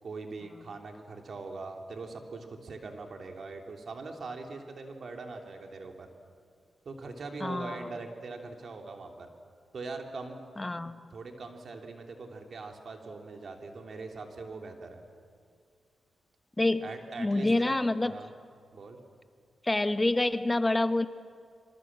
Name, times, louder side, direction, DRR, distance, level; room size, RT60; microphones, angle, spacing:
voice 1, 0.0-6.1 6.8-9.3 9.7-10.4 10.8-15.0 16.8-17.7 18.1-18.3 18.7-19.0, right 3 dB, 60° right, 3 dB, 3.1 m, -42 dB
voice 2, 7.4-7.9 10.6-11.0 16.6-16.9 17.2-18.2 19.6-21.1, left 2 dB, 20° left, 11 dB, 1.0 m, -27 dB
26.5 x 24.5 x 7.6 m, 2.3 s
cardioid pair, 85°, 0 cm